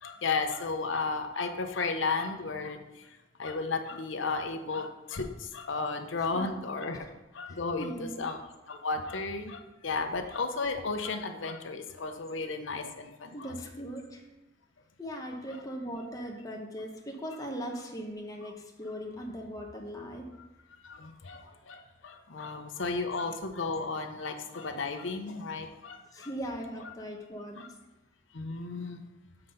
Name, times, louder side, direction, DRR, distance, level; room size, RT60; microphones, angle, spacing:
voice 1, 0.0-3.1 3.4-7.1 7.3-7.9 8.2-8.4 8.7-13.5 20.8-26.3 27.5-27.7 28.3-29.0, left 4 dB, 75° left, 5 dB, 0.7 m, -34 dB
voice 2, 6.2-6.6 6.9-7.1 7.5-8.3 9.6-9.7 13.3-14.3 15.0-20.3 26.1-27.7, equal, 20° left, 1 dB, 0.8 m, -39 dB
7.5 x 3.9 x 5.4 m, 1.0 s
head